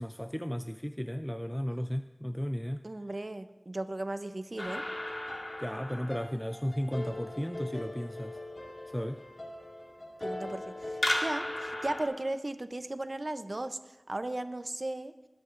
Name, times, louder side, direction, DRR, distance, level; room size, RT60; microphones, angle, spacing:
voice 1, 0.0-2.8 5.6-8.4 8.9-9.2, equal, 10° left, 9 dB, 0.3 m, -34 dB
voice 2, 2.8-4.8 10.2-15.1, right 2 dB, 65° right, 10 dB, 0.6 m, -36 dB
sound 1, 4.6-12.0, left 1 dB, 60° left, 1.8 m, -37 dB
21.5 x 9.7 x 2.5 m, 1.1 s
wide cardioid pair, 40°, 0 cm